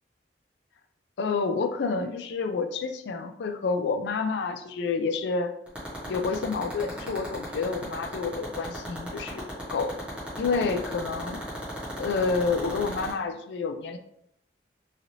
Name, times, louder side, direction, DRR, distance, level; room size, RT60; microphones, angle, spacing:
voice 1, 1.2-5.5 6.1-9.4 9.7-9.9 10.4-11.4 12.0-14.0, left 4 dB, 75° left, 8 dB, 0.3 m, -29 dB
sound 1, 5.7-13.1, equal, 5° right, 0.9 m, -36 dB
3.0 x 2.6 x 2.7 m, 0.76 s
head